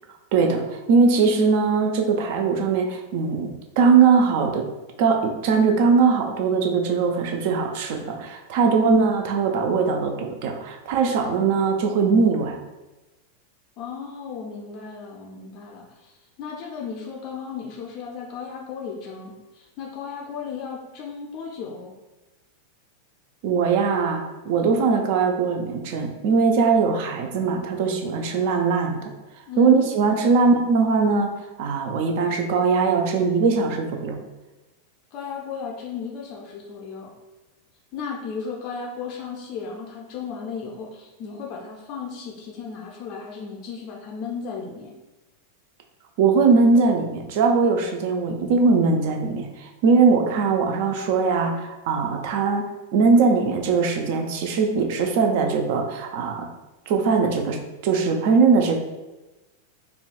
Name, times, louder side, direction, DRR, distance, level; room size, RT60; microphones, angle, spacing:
voice 1, 0.3-4.7 5.0-12.6 23.4-29.1 29.6-31.3 31.6-34.2 46.2-52.6 52.9-56.5 56.9-58.8, right 5 dB, 50° right, 4 dB, 0.4 m, -20 dB
voice 2, 13.8-16.1 16.4-21.9 29.5-29.8 35.1-37.1 37.9-44.9, left 6 dB, 40° left, -1 dB, 0.4 m, -35 dB
3.9 x 2.2 x 2.3 m, 1.1 s
figure-of-eight pair, 90°, 0 cm